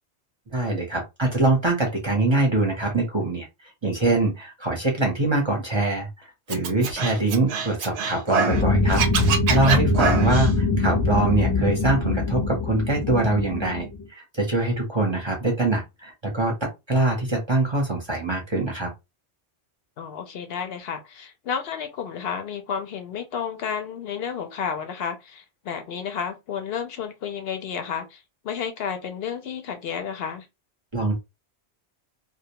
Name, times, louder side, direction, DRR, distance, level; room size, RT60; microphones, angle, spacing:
voice 1, 0.5-3.5 3.8-6.1 6.5-18.9 30.9-31.1, right 2 dB, 30° right, 0.6 m, -23 dB
Scratching (performance technique), 6.5-8.6 8.9-10.5, right 5 dB, 85° right, 0.9 m, -25 dB
sound 1, 8.5-14.0, left 3 dB, 30° left, 0.6 m, -23 dB
voice 2, 20.0-30.5, left 7 dB, 70° left, 0.8 m, -31 dB
2.2 x 2.1 x 2.8 m
omnidirectional pair, 1.1 m